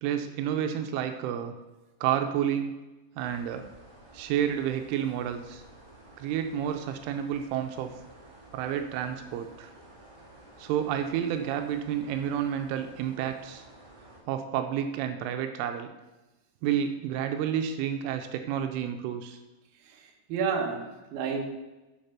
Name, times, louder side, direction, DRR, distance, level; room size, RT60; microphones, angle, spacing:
voice 1, 0.0-1.5 2.0-2.8 3.2-3.7 4.1-5.6 6.2-7.9 8.5-9.7 10.6-13.6 14.3-15.9 16.6-19.4, right 9 dB, 85° right, 6 dB, 3.1 m, -30 dB
sound 1, 3.2-14.2, right 1 dB, 25° right, 0.9 m, -52 dB
voice 2, 19.9-21.4, right 6 dB, 65° right, 1 dB, 2.5 m, -31 dB
8.5 x 6.6 x 5.7 m, 1.1 s
omnidirectional pair, 5.6 m